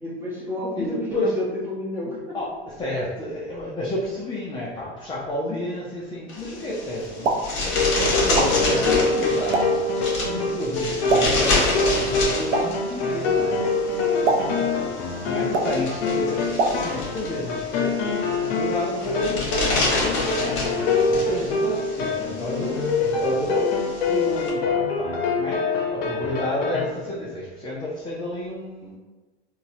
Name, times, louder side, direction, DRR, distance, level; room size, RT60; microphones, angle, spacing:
voice 1, 0.0-2.4 14.2-15.1 21.0-21.3, left 2 dB, 5° right, -7 dB, 1.0 m, -31 dB
voice 2, 0.8-1.3 2.3-2.5 2.8-7.3 7.6-13.6 14.9-15.0 15.2-19.7 20.4-20.6 21.1-29.0, left 1 dB, 15° left, -5 dB, 0.5 m, -31 dB
sound 1, 6.3-24.5, left 2 dB, 35° left, 1.4 m, -28 dB
Explosion, 7.0-17.3, right 2 dB, 70° right, 0.6 m, -30 dB
sound 2, 7.6-26.9, left 3 dB, 55° left, 0.7 m, -25 dB
3.9 x 2.3 x 2.7 m, 1.2 s
hypercardioid pair, 100°, 34 cm